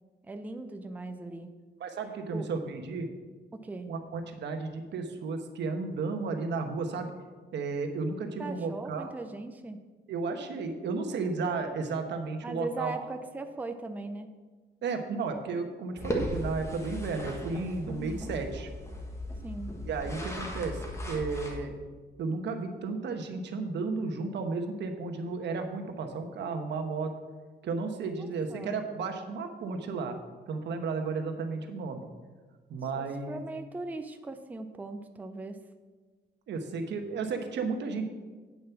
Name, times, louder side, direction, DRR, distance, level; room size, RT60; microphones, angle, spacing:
voice 1, 0.2-1.5 2.3-2.5 3.5-3.9 8.4-9.8 12.4-14.3 17.8-18.3 19.4-19.7 28.0-28.8 32.9-35.6, right 3 dB, 10° right, 7 dB, 0.4 m, -39 dB
voice 2, 1.8-3.1 3.9-7.1 7.5-9.1 10.1-12.9 14.8-18.7 19.8-20.8 21.1-21.7 22.2-27.1 27.6-30.2 30.5-32.1 32.7-33.4 36.5-38.0, right 4 dB, 75° right, 6 dB, 1.1 m, -33 dB
sound 1, 16.0-21.6, left 1 dB, 15° left, 1.4 m, -37 dB
8.8 x 6.9 x 5.8 m, 1.4 s
wide cardioid pair, 165°, 18 cm